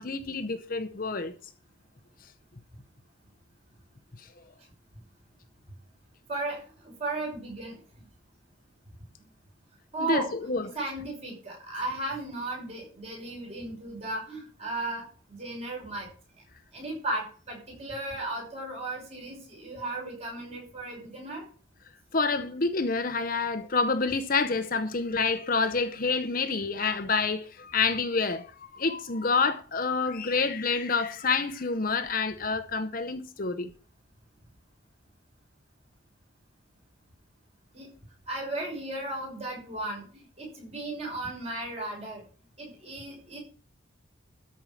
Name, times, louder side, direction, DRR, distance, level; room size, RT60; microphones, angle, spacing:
voice 1, 0.0-1.3 10.0-10.7 22.1-28.5 28.7-33.7, left 4 dB, 45° left, 0.8 m, -28 dB
voice 2, 6.3-7.8 9.9-10.3 10.6-16.1 16.7-21.4 37.7-37.9 38.3-40.1 40.4-42.2 42.6-43.4, right 2 dB, 30° right, 6.1 m, -35 dB
13.5 x 5.6 x 7.5 m
head